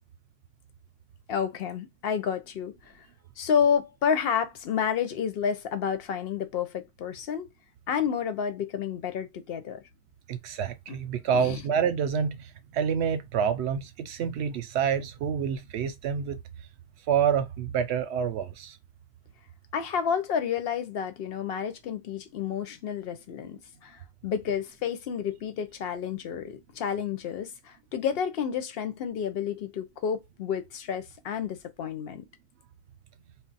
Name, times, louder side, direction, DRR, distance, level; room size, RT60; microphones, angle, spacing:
voice 1, 1.3-3.1 3.4-7.5 7.9-9.8 10.9-11.0 11.3-11.6 19.7-32.2, left 7 dB, 70° left, 0.8 m, -30 dB
voice 2, 10.3-16.4 17.1-18.8, right 7 dB, 85° right, 0.8 m, -28 dB
2.4 x 2.0 x 3.8 m
omnidirectional pair, 1.1 m